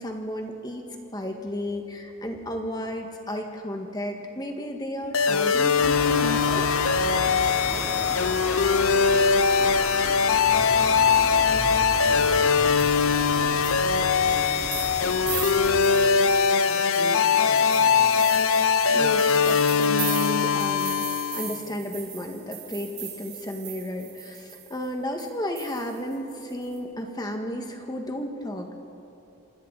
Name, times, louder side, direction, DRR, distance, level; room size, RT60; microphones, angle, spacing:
voice 1, 0.0-6.7 18.9-28.7, equal, 20° left, 3 dB, 1.7 m, -33 dB
sound 1, 5.1-21.6, left 6 dB, 75° left, 0.8 m, -21 dB
sound 2, 5.8-15.8, equal, 5° right, 2.9 m, -35 dB
voice 2, 7.1-8.2 8.5-10.2 10.5-13.6 14.2-18.3, right 1 dB, 35° right, -10 dB, 5.9 m, -43 dB
sound 3, 12.6-24.8 25.2-25.3 25.6-26.8, right 10 dB, 50° right, 5.5 m, -39 dB
27.0 x 26.0 x 4.1 m, 2.9 s
head